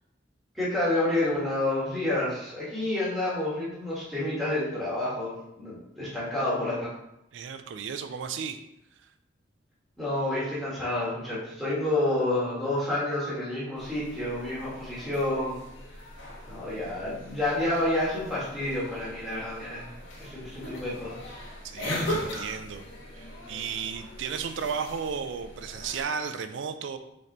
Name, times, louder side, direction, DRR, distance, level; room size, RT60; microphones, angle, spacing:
voice 1, 0.5-6.9 10.0-15.6 15.9-16.0 16.5-19.9 20.2-21.4, left 1 dB, ahead, -9 dB, 1.6 m, -29 dB
voice 2, 7.3-8.6 16.5-16.8 21.6-22.8 23.1-27.0, right 6 dB, 80° right, 9 dB, 0.4 m, -34 dB
sound 1, 13.8-26.0, left 1 dB, 80° left, 1.1 m, -39 dB
4.1 x 3.2 x 4.0 m, 0.84 s
head